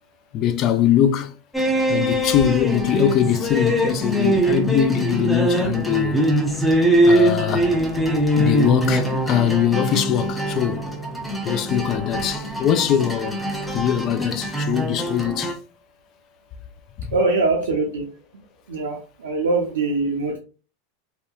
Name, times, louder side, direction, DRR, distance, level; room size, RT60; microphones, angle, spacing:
voice 1, 0.3-1.3 1.9-6.3 7.0-7.7 8.4-10.9 11.4-13.4 13.7-15.6 17.0-17.1, left 10 dB, 45° left, 0.4 m, -22 dB
sound 1, 1.5-15.5, right 1 dB, 5° left, 0.6 m, -22 dB
voice 2, 17.1-18.1 18.7-20.4, right 3 dB, 80° right, 0.5 m, -22 dB
2.7 x 2.2 x 2.3 m
hypercardioid pair, 90°, 0 cm